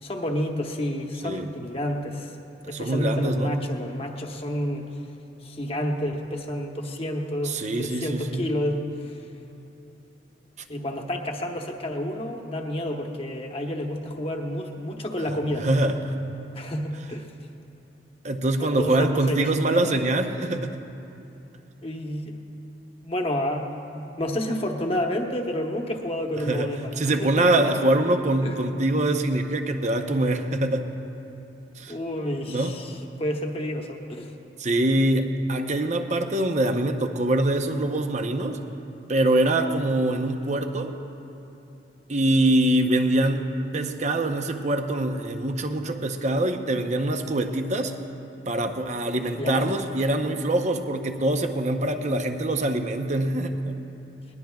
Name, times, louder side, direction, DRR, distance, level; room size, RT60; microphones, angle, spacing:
voice 1, 0.0-2.4 2.7-4.9 5.4-9.2 10.7-15.7 16.5-17.3 18.6-20.0 21.8-22.4 23.0-23.7 23.9-27.8 28.4-28.6 31.9-34.3 49.4-49.7, left 1 dB, 30° left, 2 dB, 1.1 m, -30 dB
voice 2, 2.7-3.6 7.4-8.5 15.3-15.4 15.6-16.2 18.2-20.8 26.3-26.7 27.0-30.9 31.8-31.9 32.5-32.7 34.6-38.6 39.1-40.9 42.1-43.5 43.7-47.9 48.5-53.8, right 1 dB, 40° right, 6 dB, 0.8 m, -24 dB
20.5 x 19.5 x 2.4 m, 2.8 s
head